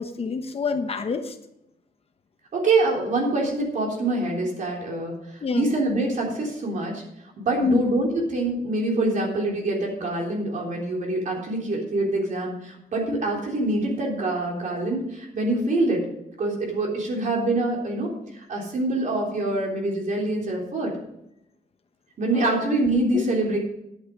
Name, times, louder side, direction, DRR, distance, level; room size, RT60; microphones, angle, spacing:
voice 1, 0.0-1.4 5.4-5.7 7.6-7.8 22.3-22.6 23.1-23.2, left 4 dB, 40° left, 8 dB, 0.9 m, -26 dB
voice 2, 2.5-5.1 5.5-7.0 7.4-16.0 16.4-18.1 18.5-20.9 22.2-23.6, right 2 dB, 50° right, -1 dB, 3.6 m, -25 dB
11.0 x 8.5 x 5.3 m, 0.81 s
wide cardioid pair, 160°, 16 cm